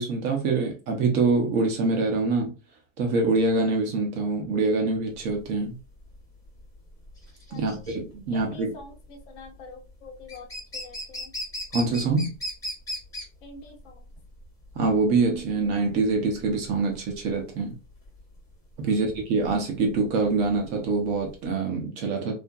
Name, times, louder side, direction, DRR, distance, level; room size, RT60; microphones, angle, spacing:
voice 1, 0.0-2.5 3.0-5.8 7.5-8.7 11.7-12.3 14.8-17.7 18.8-22.3, right 3 dB, 30° right, 0.6 m, -25 dB
sound 1, 5.1-21.5, left 1 dB, 10° left, 0.8 m, -39 dB
voice 2, 7.5-7.8 8.3-11.3 13.4-14.0 18.8-18.9, left 3 dB, 65° left, 0.7 m, -46 dB
2.7 x 2.4 x 2.3 m
supercardioid pair, 160°, 39 cm